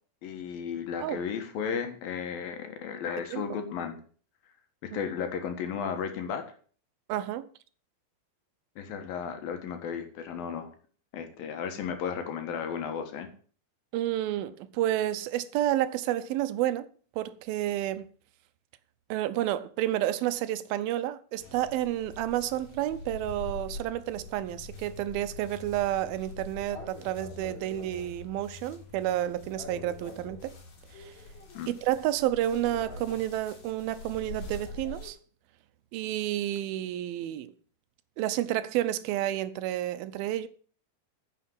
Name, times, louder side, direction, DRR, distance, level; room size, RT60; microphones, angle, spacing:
voice 1, 0.2-4.0 4.9-6.4 8.8-10.7 11.1-13.3 31.5-31.7, left 7 dB, 75° left, 3.2 m, -34 dB
voice 2, 7.1-7.4 13.9-16.9 17.2-18.1 19.1-30.5 30.9-31.1 31.7-35.2 35.9-37.5 38.2-40.5, right 13 dB, 85° right, 2.6 m, -30 dB
sound 1, 21.4-35.1, left 2 dB, 55° left, 4.2 m, -44 dB
10.0 x 6.8 x 7.7 m
omnidirectional pair, 4.2 m